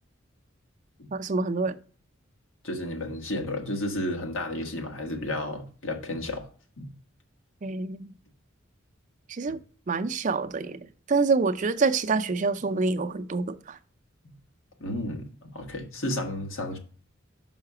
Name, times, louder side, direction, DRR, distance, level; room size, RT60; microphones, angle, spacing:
voice 1, 1.1-1.8 7.6-8.1 9.3-9.6 9.9-13.8, right 4 dB, 40° right, 0.4 m, -27 dB
voice 2, 2.6-6.5 6.8-6.9 14.8-16.8, left 1 dB, 80° left, 1.5 m, -32 dB
5.7 x 5.6 x 4.7 m
head